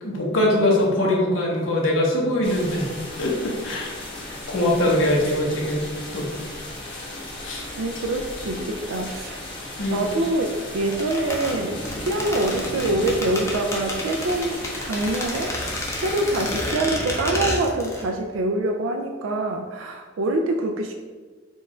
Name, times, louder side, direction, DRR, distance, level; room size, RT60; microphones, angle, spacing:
voice 1, 0.0-2.9 3.2-5.8 6.1-6.3 7.4-7.7 9.8-10.0, left 1 dB, 80° left, -3 dB, 1.0 m, -22 dB
sound 1, 2.4-16.7, left 1 dB, 65° left, 1.5 m, -35 dB
voice 2, 7.8-9.4 9.9-15.5 16.0-20.9, right 2 dB, 90° right, 3 dB, 0.4 m, -25 dB
sound 2, 10.9-18.1 18.3-18.4, left 1 dB, 15° left, 0.7 m, -30 dB
4.4 x 2.4 x 4.2 m, 1.4 s
head